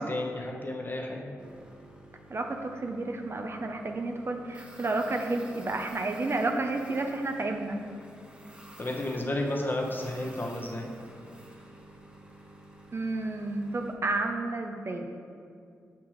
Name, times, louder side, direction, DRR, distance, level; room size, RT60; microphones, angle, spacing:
voice 1, 0.0-1.3 8.8-10.9, left 1 dB, 35° left, 1 dB, 1.0 m, -32 dB
sound 1, 1.4-13.9, right 1 dB, 15° right, 1.1 m, -51 dB
voice 2, 2.3-7.8 12.9-15.1, right 2 dB, 45° right, 4 dB, 0.6 m, -31 dB
5.9 x 5.8 x 3.1 m, 2.3 s
supercardioid pair, 40°, 6 cm